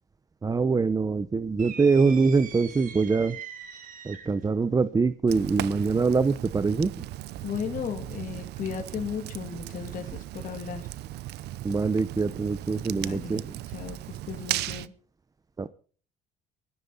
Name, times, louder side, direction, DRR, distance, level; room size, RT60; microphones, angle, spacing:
voice 1, 0.4-3.4 4.0-7.0 11.6-13.6 15.6-15.7, right 4 dB, 20° right, 14 dB, 0.8 m, -24 dB
sound 1, 1.6-4.5, right 7 dB, 55° right, 2.9 m, -42 dB
Fire, 5.3-14.9, right 15 dB, 75° right, 0.8 m, -37 dB
voice 2, 7.4-10.9 12.9-13.4 13.7-14.9, left 8 dB, 50° left, 4 dB, 2.6 m, -35 dB
20.0 x 13.5 x 4.1 m, 0.42 s
cardioid pair, 110°, 17 cm